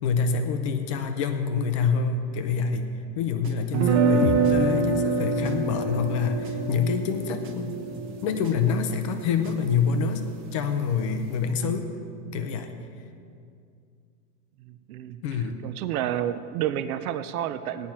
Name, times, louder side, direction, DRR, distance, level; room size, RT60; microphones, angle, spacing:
voice 1, 0.0-2.9 3.2-7.8 8.2-10.3 10.5-12.0 12.3-12.7 15.2-15.6, left 5 dB, 25° left, 7 dB, 0.3 m, -26 dB
sound 1, 3.4-10.0, right 6 dB, 25° right, 0.9 m, -45 dB
sound 2, 3.7-9.7, right 4 dB, 50° right, 1.2 m, -26 dB
sound 3, 4.2-8.2, left 10 dB, 65° left, 0.6 m, -36 dB
voice 2, 14.7-15.2 15.6-17.9, right 11 dB, 70° right, 11 dB, 0.7 m, -30 dB
16.5 x 10.5 x 4.3 m, 2.4 s
supercardioid pair, 165°, 45 cm